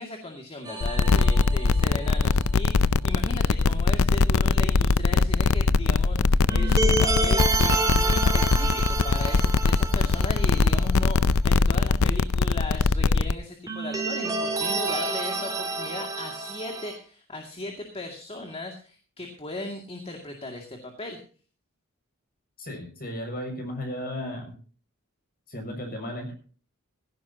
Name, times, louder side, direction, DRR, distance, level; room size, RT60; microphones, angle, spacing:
voice 1, 0.0-21.2, left 2 dB, 25° left, 2 dB, 2.3 m, -37 dB
Calm Emtim Bell music, 0.7-2.5 6.5-10.9 11.1-11.2 13.7-16.9, right 3 dB, 15° right, 3.1 m, -29 dB
sound 1, 0.8-13.3, left 4 dB, 70° left, 0.6 m, -21 dB
voice 2, 22.6-24.6 25.5-26.3, left 1 dB, 45° left, 4 dB, 6.5 m, -34 dB
16.5 x 16.5 x 2.9 m, 0.39 s
head